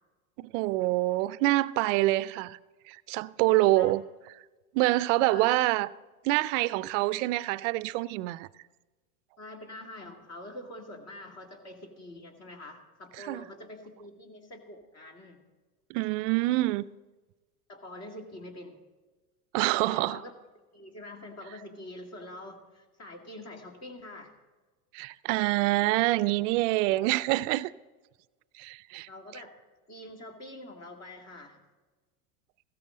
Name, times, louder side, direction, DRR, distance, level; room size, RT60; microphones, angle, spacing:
voice 1, 0.4-2.6 2.9-4.0 4.7-5.9 6.2-8.5 13.2-13.4 15.9-16.8 19.5-20.2 24.9-27.7 28.6-29.1, right 18 dB, 55° right, 0.5 m, -26 dB
voice 2, 3.5-4.0 5.3-5.6 9.4-15.4 17.7-18.8 19.9-20.3 20.7-24.3 29.1-29.5 29.9-31.6, left 1 dB, 35° left, 2.4 m, -45 dB
16.0 x 13.5 x 3.8 m
hypercardioid pair, 100°, 45 cm